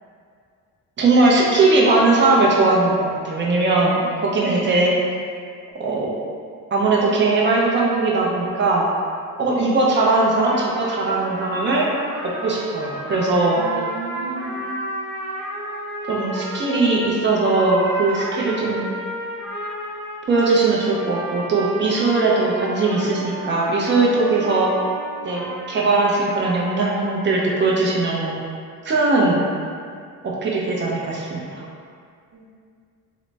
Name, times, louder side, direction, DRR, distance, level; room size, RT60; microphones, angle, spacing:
voice 1, 1.0-4.9 5.8-6.1 6.7-8.9 9.4-11.9 12.2-13.6 16.1-18.9 20.3-24.7 25.2-28.3 28.8-29.4 30.2-31.5, right 3 dB, 30° right, -3 dB, 0.5 m, -19 dB
sound 1, 9.9-27.1, right 1 dB, 15° right, 1.2 m, -32 dB
voice 2, 13.6-14.6 32.3-32.5, right 3 dB, 75° right, -7 dB, 0.6 m, -33 dB
3.8 x 2.0 x 3.3 m, 2.2 s
cardioid pair, 155°, 35 cm